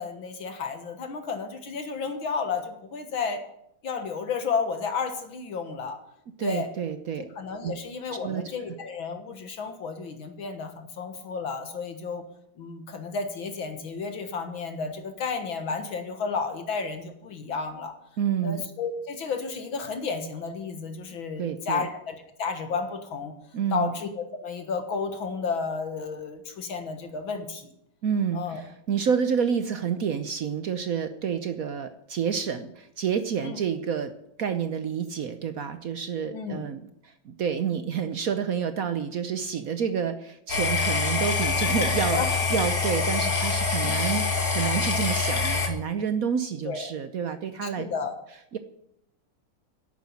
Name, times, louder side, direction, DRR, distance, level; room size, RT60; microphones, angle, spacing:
voice 1, 0.0-3.4 3.8-6.0 6.4-6.7 7.4-12.2 12.6-17.9 18.4-23.3 23.7-27.7 28.3-28.6 33.4-33.6 36.3-36.6 42.1-42.3 43.8-44.2 46.6-46.9 47.6-48.1, left 5 dB, 70° left, 6 dB, 2.2 m, -32 dB
voice 2, 6.4-7.3 7.6-7.7 8.2-8.7 18.2-18.7 21.4-21.9 23.5-23.9 28.0-34.1 34.4-42.2 42.5-47.8 48.5-48.6, right 7 dB, 60° right, 9 dB, 0.9 m, -29 dB
sound 1, 40.5-45.7, left 4 dB, 45° left, 2.3 m, -25 dB
11.5 x 8.3 x 9.1 m, 0.76 s
omnidirectional pair, 2.4 m